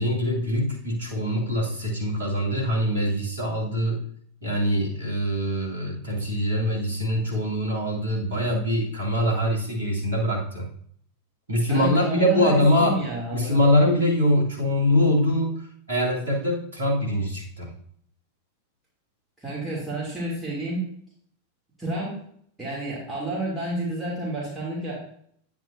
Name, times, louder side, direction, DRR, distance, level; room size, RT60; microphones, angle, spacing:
voice 1, 0.0-4.0 4.4-10.7 11.5-13.0 13.3-15.5 15.9-17.7, equal, 75° right, -2 dB, 2.1 m, -23 dB
voice 2, 11.7-13.6 19.4-20.9 21.8-22.2 22.6-25.0, right 2 dB, 10° right, -6 dB, 2.7 m, -30 dB
9.3 x 6.9 x 2.7 m, 0.64 s
figure-of-eight pair, 90°, 0 cm